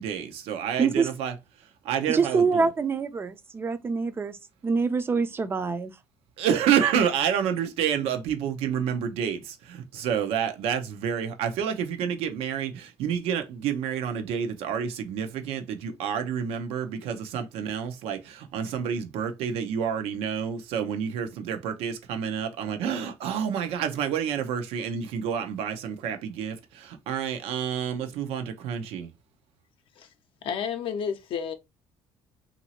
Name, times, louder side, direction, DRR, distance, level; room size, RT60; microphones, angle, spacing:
voice 1, 0.0-1.3 1.8-2.7 6.4-29.1, right 8 dB, 85° right, 0.7 m, -29 dB
voice 2, 0.8-1.1 2.1-4.4 4.6-5.9, right 4 dB, 25° right, 0.4 m, -25 dB
voice 3, 30.4-31.5, left 7 dB, 60° left, 0.5 m, -31 dB
3.0 x 2.6 x 2.8 m
cardioid pair, 125°, 10 cm